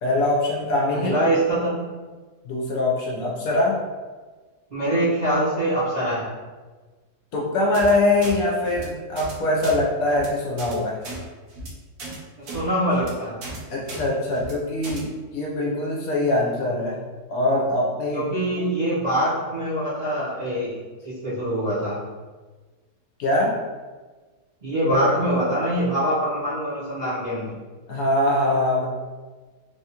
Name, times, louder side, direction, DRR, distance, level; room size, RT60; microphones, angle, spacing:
voice 1, 0.0-1.1 2.5-3.8 7.3-11.0 13.7-17.0 17.3-18.3 23.2-23.6 27.9-28.9, left 2 dB, 70° left, -3 dB, 1.0 m, -23 dB
voice 2, 1.0-1.8 4.7-6.3 12.5-13.4 18.1-22.0 24.6-27.6, right 1 dB, 35° right, -12 dB, 0.8 m, -24 dB
sound 1, 7.7-7.9 8.2-8.3 8.7-8.8 9.2-9.3 9.6-9.8 10.1-10.3 10.6-10.7 11.0-11.2 11.5-11.7 12.0-12.2 12.5-12.6 12.9-13.1 13.4-13.6 13.9-14.0 14.3-14.5 14.8-15.0, right 2 dB, 75° right, 1.2 m, -35 dB
3.3 x 2.4 x 2.8 m, 1.3 s
omnidirectional pair, 1.7 m